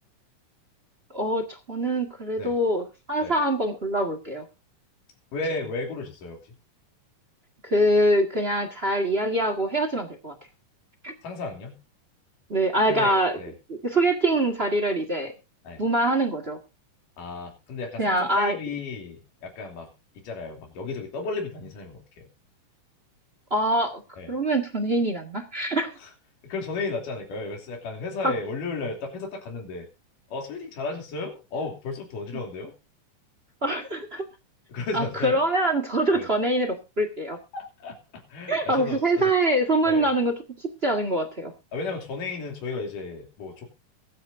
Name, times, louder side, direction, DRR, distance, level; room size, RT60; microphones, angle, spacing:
voice 1, 1.1-4.4 7.6-10.3 11.0-11.1 12.5-13.3 13.7-15.3 15.8-16.6 18.0-18.6 23.5-24.0 24.3-25.9 28.2-28.3 33.6-34.2 34.9-37.4 38.5-40.3 40.6-41.5, right 1 dB, 25° right, 7 dB, 1.3 m, -24 dB
voice 2, 5.3-6.4 11.2-11.8 12.9-13.5 15.6-15.8 17.2-19.9 20.2-22.2 24.2-24.3 26.0-26.1 26.4-29.9 30.3-32.7 34.7-35.4 36.1-36.3 37.5-39.3 39.8-40.1 41.7-43.7, left 3 dB, 75° left, 2 dB, 4.6 m, -34 dB
23.5 x 9.5 x 2.6 m, 0.29 s
omnidirectional pair, 3.8 m